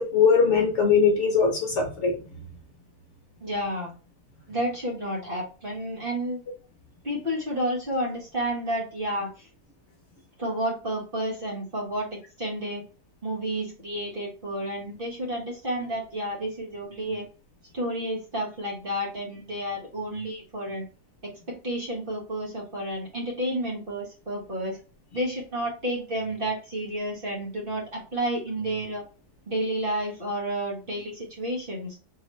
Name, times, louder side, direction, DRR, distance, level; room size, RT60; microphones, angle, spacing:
voice 1, 0.0-2.2, left 5 dB, 55° left, 1 dB, 1.0 m, -21 dB
voice 2, 3.4-3.9 4.5-6.4 7.0-9.5 10.4-12.8 13.2-17.2 17.7-20.9 21.2-24.8 25.1-29.0 29.5-32.0, right 1 dB, 35° right, -3 dB, 1.4 m, -31 dB
3.9 x 3.1 x 3.1 m, 0.34 s
omnidirectional pair, 1.7 m